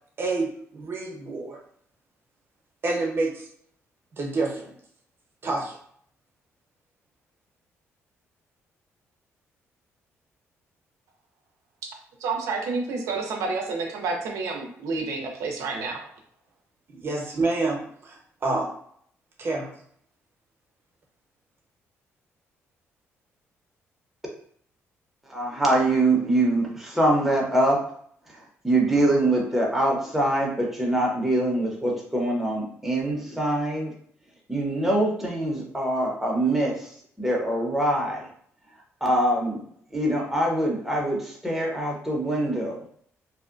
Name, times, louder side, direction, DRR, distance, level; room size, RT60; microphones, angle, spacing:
voice 1, 0.2-1.6 2.8-3.4 4.2-4.7 5.4-5.7 16.9-18.7 19.4-19.7, right 3 dB, 45° right, 0 dB, 0.8 m, -28 dB
voice 2, 12.2-16.1, right 4 dB, 85° right, 1 dB, 0.4 m, -29 dB
voice 3, 25.3-27.8 28.6-33.9 34.5-36.9 37.2-38.2 39.0-39.6 39.9-42.8, right 1 dB, 5° right, -2 dB, 0.7 m, -24 dB
2.6 x 2.1 x 2.4 m, 0.62 s
cardioid pair, 90°, 5 cm